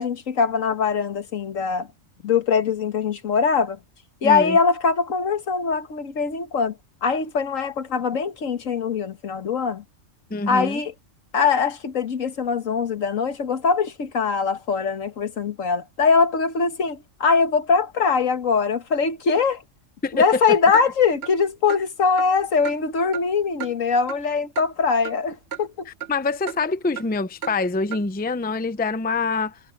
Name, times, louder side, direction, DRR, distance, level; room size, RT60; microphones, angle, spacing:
voice 1, 0.0-1.9 2.2-3.8 4.2-9.8 10.5-10.9 11.3-19.6 20.1-25.9, left 5 dB, 80° left, 1.7 m, -22 dB
voice 2, 4.2-4.6 10.3-10.8 20.0-20.4 25.9-29.6, left 3 dB, 10° left, 0.5 m, -25 dB
Clock, 20.7-20.9 21.2-21.3 21.7-21.8 22.2-22.3 22.6-22.8 23.1-23.2 23.6-23.7 24.1-24.2 24.6-24.7 25.0-25.2 25.5-25.6 26.0-26.1 26.5-26.6 27.0-27.1 27.4-27.5 27.9-28.0, right 9 dB, 55° right, 1.2 m, -33 dB
omnidirectional pair, 1.3 m